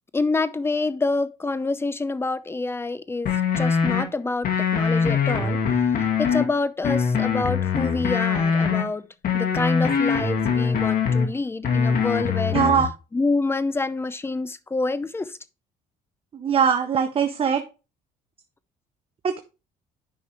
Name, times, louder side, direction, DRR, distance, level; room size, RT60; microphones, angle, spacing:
voice 1, 0.1-5.6 6.2-9.0 9.3-12.6 13.1-15.4, left 3 dB, 15° left, 0.6 m, -27 dB
sound 1, 3.3-4.0 4.4-6.5 6.8-8.8 9.2-11.3 11.6-12.9, left 6 dB, 60° left, 2.0 m, -22 dB
voice 2, 12.5-12.9 16.3-17.6 19.2-19.4, right 7 dB, 35° right, 0.8 m, -21 dB
9.8 x 5.4 x 3.1 m
cardioid pair, 110°, 17 cm